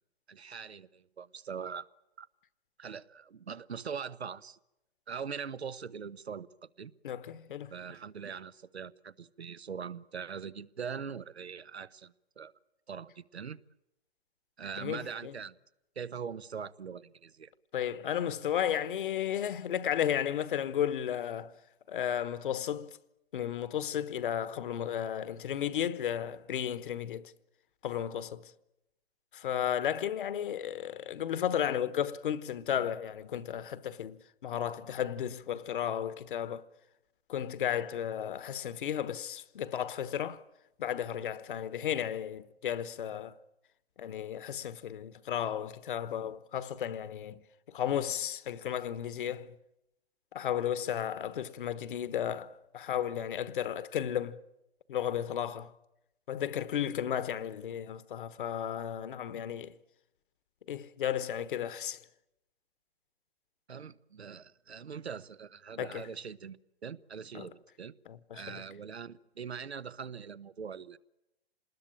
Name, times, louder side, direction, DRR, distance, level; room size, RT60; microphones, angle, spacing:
voice 1, 0.3-1.9 2.2-2.3 2.8-4.6 5.1-6.5 6.8-6.9 7.7-12.5 12.9-13.6 14.6-15.6 16.0-17.5 63.7-67.9 68.3-71.0, right 6 dB, 85° right, 1.0 m, -42 dB
voice 2, 7.0-7.7 14.8-15.3 17.7-21.6 21.9-23.0 23.3-27.3 27.8-28.5 29.3-36.7 37.3-40.4 40.8-43.3 44.0-49.6 50.3-54.4 54.9-55.7 56.3-59.7 60.7-62.0 65.8-66.1 67.3-67.5 68.1-68.6, left 9 dB, 55° left, 1.2 m, -34 dB
26.5 x 20.5 x 8.8 m
hypercardioid pair, 135°, 31 cm